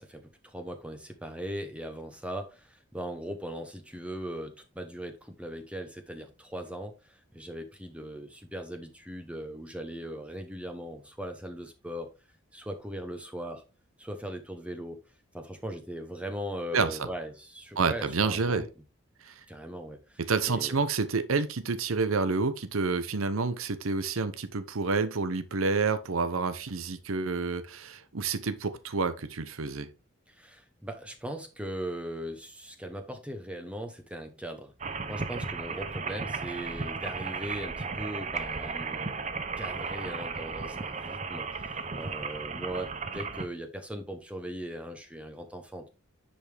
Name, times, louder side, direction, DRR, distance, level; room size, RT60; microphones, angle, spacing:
voice 1, 0.0-12.1 12.5-13.6 14.0-15.0 15.3-18.7 19.5-20.8 30.3-34.7 35.1-39.2 39.6-45.9, right 1 dB, 5° right, 0.9 m, -39 dB
voice 2, 16.7-17.1 17.8-18.6 19.2-19.4 20.3-29.9, right 4 dB, 85° right, 0.8 m, -29 dB
sound 1, 34.8-43.5, right 4 dB, 35° right, 0.7 m, -35 dB
10.0 x 5.3 x 3.4 m
head